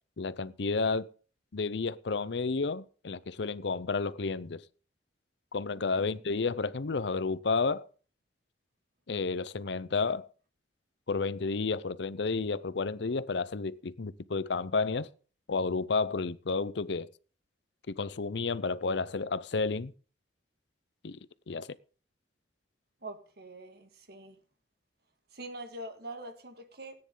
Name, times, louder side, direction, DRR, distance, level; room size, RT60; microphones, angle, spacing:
voice 1, 0.2-1.1 1.5-4.6 5.5-7.9 9.1-10.3 11.1-15.1 15.5-17.1 17.9-19.9 21.0-21.2 21.5-21.7, left 4 dB, 70° left, 0.6 m, -31 dB
voice 2, 23.0-24.4 25.3-26.9, right 1 dB, 60° right, 1.9 m, -44 dB
17.5 x 9.7 x 3.8 m
head